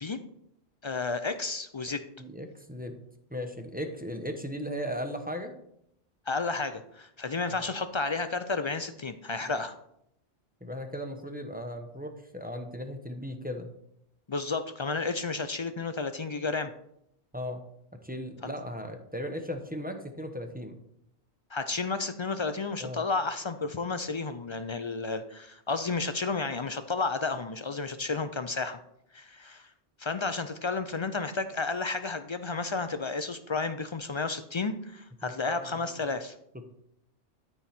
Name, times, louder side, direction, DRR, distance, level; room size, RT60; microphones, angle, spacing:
voice 1, 0.8-2.0 6.3-9.8 14.3-16.7 18.4-18.5 21.5-28.8 29.1-29.7 30.0-36.3, left 3 dB, 55° left, 10 dB, 0.3 m, -32 dB
voice 2, 2.2-3.0 3.3-5.5 7.4-7.7 9.4-9.6 10.6-13.7 17.3-17.6 17.9-20.8 22.8-23.0 28.0-28.2 35.2-35.8, equal, 10° right, 5 dB, 0.8 m, -37 dB
12.5 x 4.6 x 4.3 m, 0.75 s
omnidirectional pair, 1.2 m